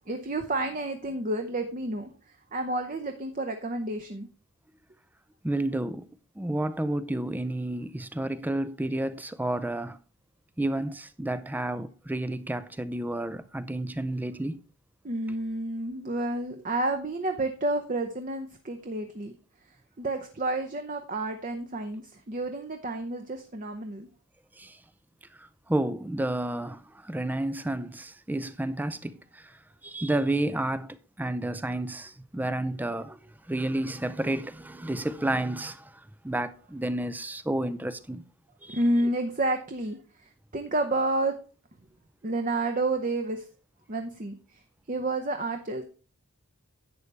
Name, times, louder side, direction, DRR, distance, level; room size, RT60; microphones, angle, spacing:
voice 1, 0.1-4.3 15.0-19.3 20.0-24.1 34.2-34.3 38.7-41.3 42.2-43.5 43.9-44.6 44.9-45.8, right 2 dB, 35° right, 0.8 m, -30 dB
voice 2, 5.4-6.1 6.4-10.0 10.6-14.6 24.6-24.8 25.4-33.2 33.5-38.2 38.6-38.8, right 1 dB, 10° right, 0.4 m, -31 dB
11.0 x 8.3 x 3.4 m
head